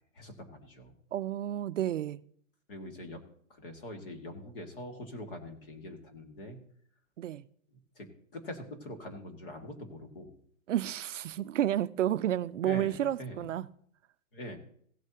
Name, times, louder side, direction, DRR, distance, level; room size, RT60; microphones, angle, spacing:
voice 1, 0.1-0.9 2.7-3.2 3.5-6.6 8.0-8.1 8.3-10.3 12.6-13.5 14.3-14.6, left 1 dB, 45° left, 2.0 m, -43 dB
voice 2, 1.1-2.2 7.2-7.4 10.7-13.7, right 11 dB, 65° right, 0.5 m, -31 dB
17.0 x 8.1 x 2.9 m
hypercardioid pair, 180°, 40 cm